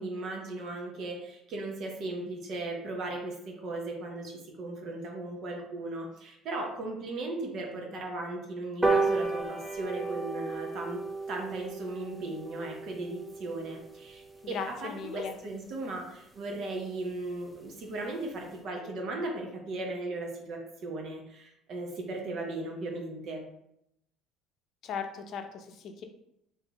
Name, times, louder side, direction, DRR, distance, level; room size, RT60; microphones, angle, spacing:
voice 1, 0.0-11.0 11.3-23.4, right 2 dB, 55° right, 1 dB, 0.8 m, -37 dB
sound 1, 8.8-15.6 16.0-16.1 16.4-16.5 16.8-16.9 17.2-17.3 17.6-17.8 18.3-18.4, right 3 dB, 10° right, 0.5 m, -33 dB
voice 2, 14.4-15.3 24.8-26.0, left 6 dB, 55° left, 6 dB, 0.5 m, -37 dB
3.9 x 2.7 x 3.4 m, 0.80 s
cardioid pair, 110°, 0 cm